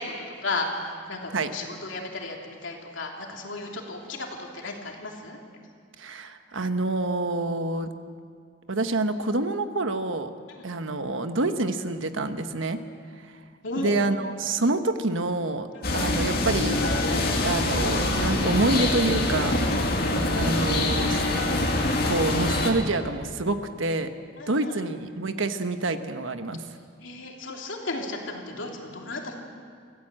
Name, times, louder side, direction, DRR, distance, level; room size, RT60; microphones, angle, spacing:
voice 1, 0.0-5.4 10.5-10.7 13.6-14.0 15.7-16.0 24.4-24.8 27.0-29.3, left 2 dB, 75° left, 0 dB, 3.1 m, -34 dB
voice 2, 6.0-7.9 8.7-10.3 10.6-12.8 13.8-15.7 15.9-16.9 17.4-19.6 20.1-21.2 22.0-24.1 24.5-26.6, right 2 dB, 80° right, 8 dB, 1.2 m, -27 dB
sound 1, 15.8-22.7, left 2 dB, 50° left, 2.4 m, -24 dB
24.5 x 15.5 x 7.6 m, 2.1 s
head